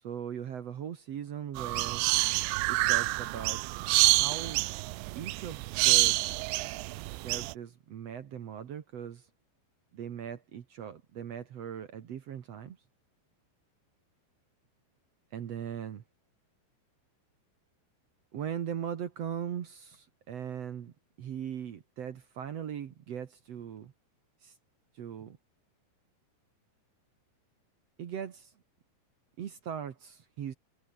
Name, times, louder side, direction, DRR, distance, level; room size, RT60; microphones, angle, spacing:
voice 1, 0.0-2.0 2.7-3.6 4.0-4.6 5.1-6.2 7.2-9.3 9.9-12.8 15.3-16.0 18.3-23.9 24.4-24.5 24.9-25.4 28.0-28.5 29.4-30.5, right 9 dB, 65° right, 1.6 m, -39 dB
sound 1, 1.6-7.5, right 20 dB, 90° right, 3.0 m, -27 dB
omnidirectional pair, 5.1 m